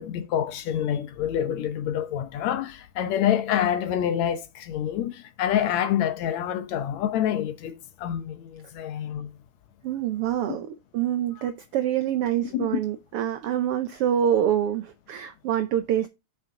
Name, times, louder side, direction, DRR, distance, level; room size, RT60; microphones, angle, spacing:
voice 1, 0.0-9.3 12.5-12.6, left 10 dB, 70° left, 2.0 m, -27 dB
voice 2, 9.8-10.7 10.9-16.1, right 10 dB, 75° right, 1.3 m, -26 dB
7.3 x 6.2 x 3.7 m
omnidirectional pair, 3.5 m